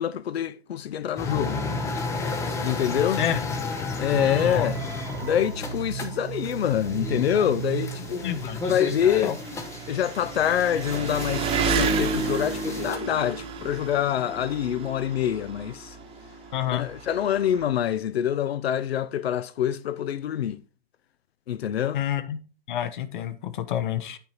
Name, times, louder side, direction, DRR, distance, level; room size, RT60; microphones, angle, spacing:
voice 1, 0.0-1.6 2.6-3.3 4.0-4.8 5.2-9.4 9.9-16.0 16.7-20.6 21.5-22.0, left 10 dB, 80° left, 0.6 m, -26 dB
sound 1, 1.2-13.0, left 3 dB, 10° left, 0.6 m, -33 dB
Engine, 3.1-3.2 3.6-3.7 4.6-4.7 4.9-17.7, right 5 dB, 20° right, 1.1 m, -32 dB
sound 2, 4.1-9.2, right 10 dB, 60° right, 1.0 m, -36 dB
voice 2, 8.2-8.8 9.2-9.3 16.5-16.9 21.9-22.4 22.7-24.2, left 10 dB, 50° left, 0.9 m, -28 dB
9.3 x 4.0 x 4.3 m
hypercardioid pair, 140°, 31 cm